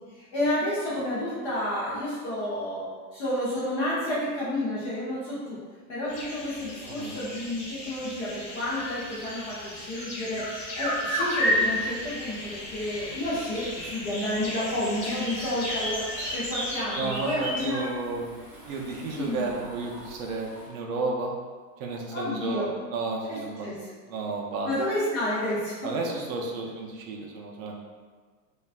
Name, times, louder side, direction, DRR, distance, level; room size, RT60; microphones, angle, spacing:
voice 1, 0.1-5.6 5.9-17.9 19.1-19.5 22.1-22.7 23.3-23.8 24.6-26.0, left 1 dB, 25° left, -8 dB, 0.4 m, -30 dB
sound 1, 6.1-16.7, left 1 dB, 50° left, 1.0 m, -33 dB
voice 2, 6.8-7.2 17.0-18.3 18.6-21.3 21.8-23.7 24.1-24.7 25.8-27.8, right 3 dB, 55° right, 0 dB, 0.6 m, -32 dB
sound 2, 11.5-20.7, equal, 5° right, 0.7 m, -38 dB
2.5 x 2.2 x 2.3 m, 1.5 s
hypercardioid pair, 115°, 49 cm